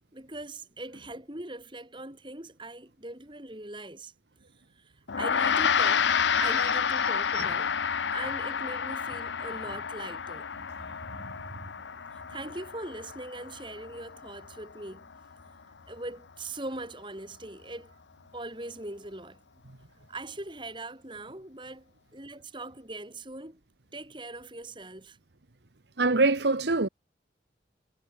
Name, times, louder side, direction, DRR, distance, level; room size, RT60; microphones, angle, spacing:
voice 1, 0.1-4.1 4.7-6.1 6.4-7.8 8.1-10.5 12.3-15.1 15.9-17.9 18.3-19.4 20.1-23.6 23.9-25.2, right 2 dB, 25° right, 3.6 m, -41 dB
Gong, 5.1-14.7, left 7 dB, 85° left, 0.8 m, -29 dB
voice 2, 11.1-11.6 26.0-26.9, right 3 dB, 70° right, 1.2 m, -25 dB
head